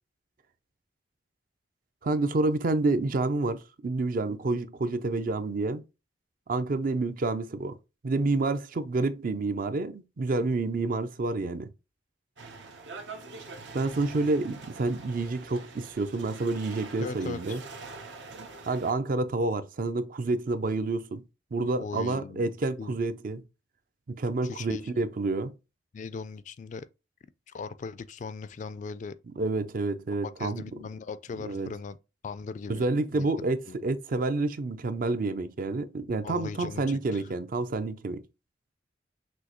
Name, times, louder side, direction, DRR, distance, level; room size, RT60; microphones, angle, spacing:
voice 1, 2.0-5.8 6.5-7.8 8.0-11.7 13.7-17.6 18.7-21.2 21.5-23.4 24.1-25.5 29.4-30.6 31.4-31.7 32.7-38.2, right 3 dB, 50° right, 0.4 m, -29 dB
sound 1, 12.4-18.9, right 3 dB, 80° right, 0.8 m, -44 dB
voice 2, 17.0-17.6 21.8-22.5 22.8-23.0 24.4-25.1 25.9-26.9 27.5-29.1 30.4-32.0 32.2-32.8 33.1-33.3 33.7-33.8 36.2-37.3, left 4 dB, 45° left, 0.3 m, -39 dB
6.1 x 2.7 x 2.9 m
head